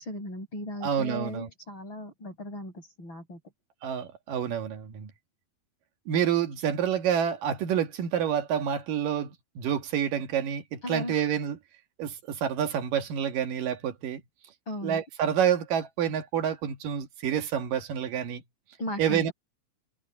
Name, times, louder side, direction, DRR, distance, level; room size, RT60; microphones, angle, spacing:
voice 1, 0.0-3.4 10.8-11.2 14.7-15.0 18.8-19.3, left 1 dB, 30° left, 7.9 m, -37 dB
voice 2, 0.8-1.5 3.8-5.1 6.1-11.6 12.0-14.2 14.8-18.4 19.0-19.3, right 9 dB, 65° right, 3.0 m, -28 dB
omnidirectional pair, 4.5 m